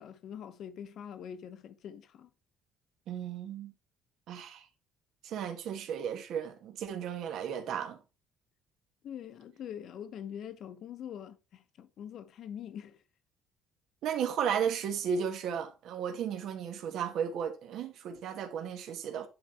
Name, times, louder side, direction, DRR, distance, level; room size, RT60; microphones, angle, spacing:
voice 1, 0.0-2.3 9.0-13.0, left 9 dB, 50° left, 1.0 m, -44 dB
voice 2, 3.1-3.7 4.3-4.7 5.2-8.0 14.0-19.3, right 7 dB, 60° right, 1.6 m, -34 dB
10.5 x 4.2 x 4.4 m
cardioid pair, 155°, 0 cm